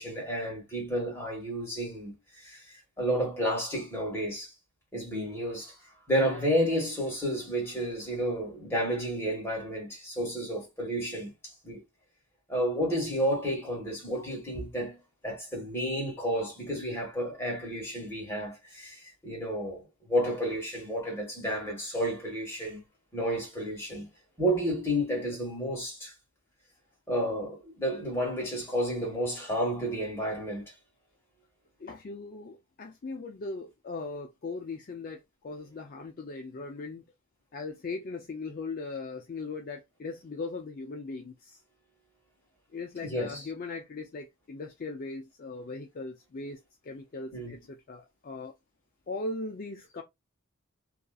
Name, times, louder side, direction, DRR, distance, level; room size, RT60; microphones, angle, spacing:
voice 1, 0.0-4.5 4.9-5.8 6.1-11.8 12.5-15.0 15.2-19.8 20.1-22.8 23.1-24.1 24.4-26.1 27.1-30.7 43.0-43.5 47.3-47.6, equal, 10° left, 1.3 m, -31 dB
voice 2, 31.8-37.0 37.5-41.6 42.7-48.5 49.1-50.0, left 3 dB, 40° left, 0.4 m, -39 dB
2.7 x 2.4 x 2.3 m
head